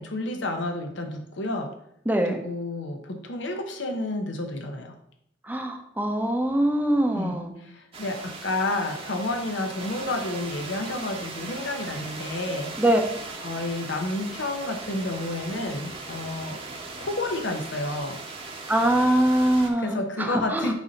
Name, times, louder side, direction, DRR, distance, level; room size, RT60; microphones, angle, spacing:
voice 1, 0.0-1.7 2.2-5.0 7.1-12.8 13.4-16.6 17.0-18.2 19.8-20.7, left 2 dB, 85° left, 4 dB, 0.8 m, -30 dB
voice 2, 2.1-2.4 5.5-7.5 12.8-13.0 18.7-20.7, right 1 dB, 10° right, 4 dB, 0.7 m, -23 dB
sound 1, 7.9-19.7, right 3 dB, 30° right, 1.0 m, -38 dB
8.1 x 2.8 x 5.2 m, 0.72 s
head